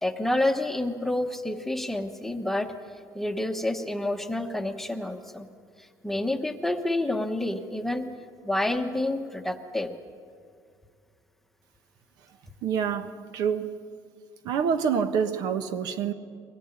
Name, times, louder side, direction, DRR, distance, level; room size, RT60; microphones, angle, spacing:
voice 1, 0.0-2.7 3.1-5.5 5.8-8.1 8.4-10.0, left 1 dB, 5° left, 5 dB, 1.1 m, -28 dB
voice 2, 12.6-13.8 14.4-16.1, right 7 dB, 65° right, 9 dB, 1.4 m, -27 dB
23.0 x 18.5 x 9.7 m, 2.2 s
cardioid pair, 150°, 7 cm